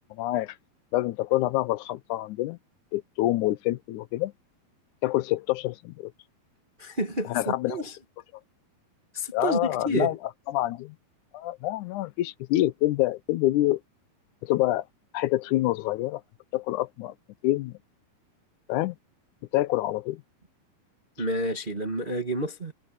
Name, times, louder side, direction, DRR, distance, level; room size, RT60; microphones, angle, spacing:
voice 1, 0.1-0.6 0.9-2.6 2.9-4.3 5.0-6.1 7.3-7.8 9.3-10.2 10.5-11.0 11.3-13.8 14.4-14.8 15.1-16.2 16.5-17.1 17.4-17.8 18.7-19.0 19.5-20.2, left 16 dB, 90° left, 1.7 m, -26 dB
voice 2, 6.8-8.0 9.1-9.6 9.8-10.1 21.2-22.7, right 1 dB, 65° right, 0.5 m, -29 dB
omnidirectional pair, 4.4 m